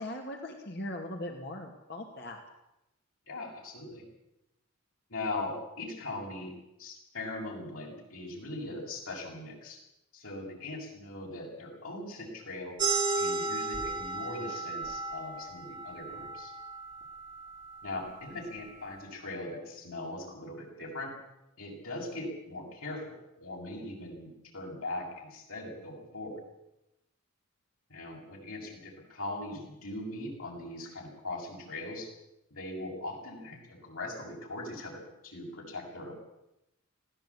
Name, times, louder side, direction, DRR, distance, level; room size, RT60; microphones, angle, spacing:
voice 1, 0.0-2.4, left 1 dB, 50° left, 3 dB, 2.3 m, -39 dB
voice 2, 3.3-4.0 5.1-6.5 6.8-9.8 10.1-12.8 13.2-16.5 17.8-21.1 21.6-26.4 27.9-32.1 32.5-36.1, left 2 dB, 85° left, -1 dB, 7.3 m, -40 dB
sound 1, 12.8-18.0, right 3 dB, 20° right, 5.0 m, -34 dB
20.0 x 16.5 x 8.7 m, 0.89 s
head